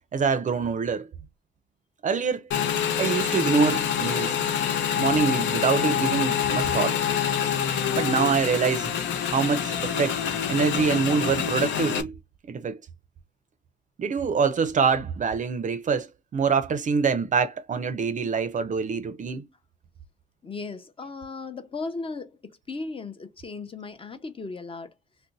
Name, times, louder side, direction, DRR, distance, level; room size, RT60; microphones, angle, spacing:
voice 1, 0.1-1.1 2.0-2.4 3.0-4.4 5.0-7.0 7.9-8.9 9.3-10.2 10.5-12.2 12.5-12.8 14.0-19.4, right 5 dB, 40° right, 0.5 m, -25 dB
Motorcycle / Engine, 2.5-12.0, left 8 dB, 70° left, 0.6 m, -26 dB
voice 2, 20.4-22.4 22.7-24.9, left 3 dB, 25° left, 0.6 m, -36 dB
2.6 x 2.1 x 3.9 m
cardioid pair, 90°, 20 cm